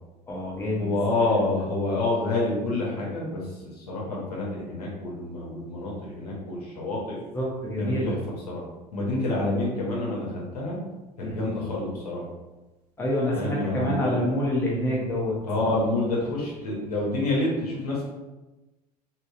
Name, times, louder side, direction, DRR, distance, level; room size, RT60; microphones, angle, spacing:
voice 1, 0.3-1.0 7.3-8.2 11.2-11.5 13.0-15.4, left 1 dB, 10° left, -4 dB, 0.8 m, -27 dB
voice 2, 0.8-3.4 3.7-7.2 7.8-8.2 8.5-8.6 8.9-10.8 11.2-12.2 13.3-14.1 15.4-18.0, left 2 dB, 70° left, -4 dB, 1.0 m, -28 dB
3.8 x 2.1 x 2.5 m, 1.1 s
figure-of-eight pair, 70°, 21 cm